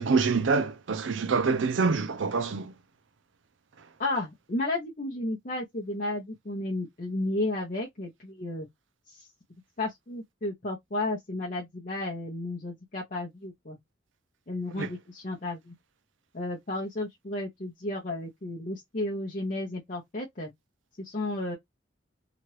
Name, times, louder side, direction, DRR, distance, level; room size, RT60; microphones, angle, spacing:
voice 1, 0.0-2.7 14.8-14.9, right 4 dB, 85° right, 0.6 m, -26 dB
voice 2, 4.0-8.7 9.1-9.3 9.8-13.8 14.5-15.7 16.3-20.5 21.0-21.6, left 2 dB, 45° left, 0.7 m, -33 dB
2.9 x 2.4 x 3.1 m
head